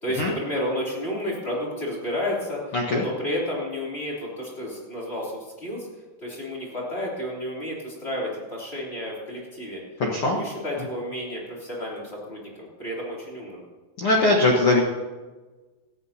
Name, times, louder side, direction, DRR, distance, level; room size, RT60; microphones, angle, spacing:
voice 1, 0.0-5.3 5.6-5.9 6.2-9.8 10.2-13.6, left 1 dB, 15° left, -3 dB, 3.0 m, -31 dB
voice 2, 2.7-3.0 10.0-10.4 14.0-14.8, left 2 dB, 75° left, -1 dB, 1.2 m, -20 dB
19.0 x 14.0 x 2.9 m, 1.3 s
omnidirectional pair, 4.9 m